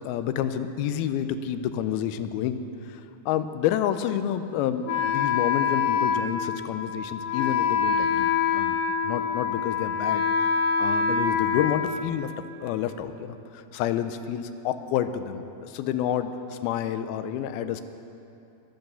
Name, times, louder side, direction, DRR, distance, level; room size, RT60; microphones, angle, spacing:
voice 1, 0.0-8.8 9.0-10.5 10.8-12.3 12.6-17.8, left 10 dB, 85° left, 11 dB, 2.5 m, -29 dB
Wind instrument woodwind instrument, 4.9-12.6, left 6 dB, 70° left, 2.1 m, -26 dB
22.5 x 7.9 x 6.9 m, 2.7 s
omnidirectional pair, 4.3 m